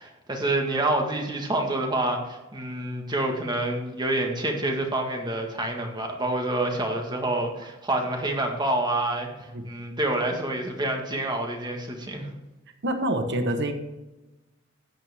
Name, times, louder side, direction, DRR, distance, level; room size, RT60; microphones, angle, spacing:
voice 1, 0.0-12.3, right 2 dB, 20° right, 2 dB, 1.6 m, -27 dB
voice 2, 12.8-13.7, right 1 dB, 55° right, 7 dB, 1.2 m, -26 dB
13.5 x 9.0 x 3.5 m, 1.1 s
head